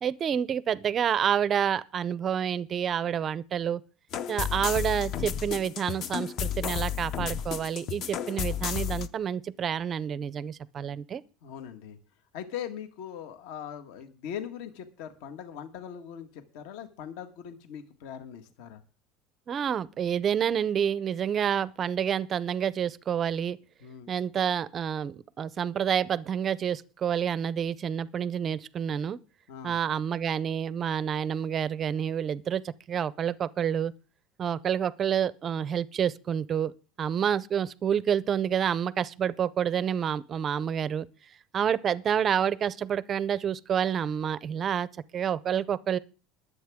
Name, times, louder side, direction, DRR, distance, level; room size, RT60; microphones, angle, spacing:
voice 1, 0.0-3.8 4.3-11.2 19.5-23.6 24.1-29.2 29.6-33.9 34.4-36.7 37.0-41.1 41.5-46.0, right 8 dB, 25° right, 0.5 m, -28 dB
sound 1, 4.1-9.1, left 9 dB, 35° left, 0.6 m, -32 dB
voice 2, 11.4-12.0 12.3-18.8 23.8-24.1 29.5-29.8, left 9 dB, 65° left, 1.5 m, -40 dB
22.0 x 8.2 x 3.6 m
cardioid pair, 180°, 0 cm